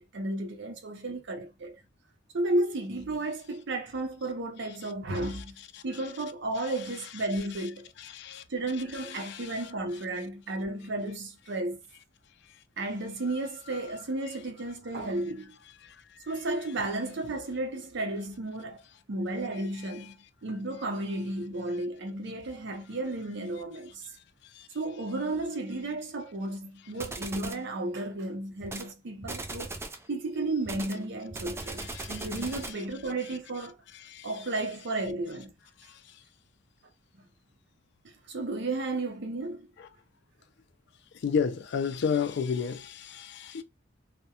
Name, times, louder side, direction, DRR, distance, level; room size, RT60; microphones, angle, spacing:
voice 1, 0.0-1.8 2.3-5.5 5.8-7.9 8.5-11.8 12.8-15.5 16.3-18.8 19.1-20.2 20.4-24.1 24.7-29.7 30.1-33.8 34.2-35.5 38.0-39.7, right 2 dB, 65° right, 0.6 m, -33 dB
voice 2, 8.0-8.4 8.9-9.6 15.8-15.9 24.6-24.7 31.8-32.3 34.1-34.3 39.8-39.9 41.2-43.6, left 6 dB, 60° left, 0.4 m, -32 dB
sound 1, 27.0-27.6 28.6-28.9 29.2-30.1 30.6-32.9, right 2 dB, 15° right, 0.3 m, -38 dB
2.3 x 2.1 x 2.7 m
head